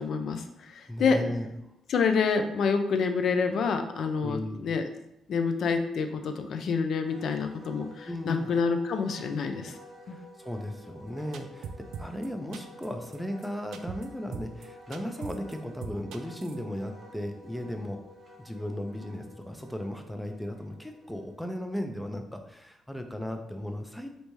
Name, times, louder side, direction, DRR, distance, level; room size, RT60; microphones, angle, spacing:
voice 1, 0.0-1.2 1.9-4.9 5.3-9.8 10.1-10.2, left 5 dB, 65° left, 7 dB, 0.4 m, -27 dB
voice 2, 0.9-1.5 4.2-4.7 8.0-8.5 10.0-18.0 18.4-24.1, equal, 5° left, 5 dB, 0.4 m, -36 dB
Wind instrument woodwind instrument, 7.1-21.7, equal, 30° right, 1.0 m, -51 dB
sound 1, 11.3-12.3 12.5-12.9 13.1-13.2 13.4-13.5 13.7-14.1 14.3-14.7 14.9-15.5 15.8-16.6, right 6 dB, 80° right, 0.3 m, -39 dB
3.3 x 2.7 x 3.0 m, 0.83 s
cardioid pair, 90°, 0 cm